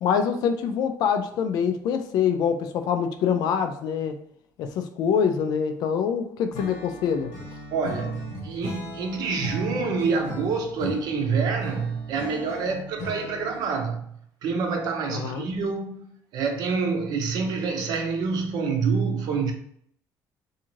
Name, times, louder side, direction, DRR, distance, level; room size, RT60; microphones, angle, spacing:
voice 1, 0.0-4.2 4.6-7.3 15.1-15.5, left 7 dB, 65° left, 0.4 m, -25 dB
Acoustic guitar / Strum, 6.5-13.7, left 1 dB, 85° left, 1.1 m, -38 dB
voice 2, 7.7-14.0 14.4-19.5, right 5 dB, 65° right, 0.6 m, -27 dB
2.6 x 2.4 x 3.0 m
cardioid pair, 140°, 7 cm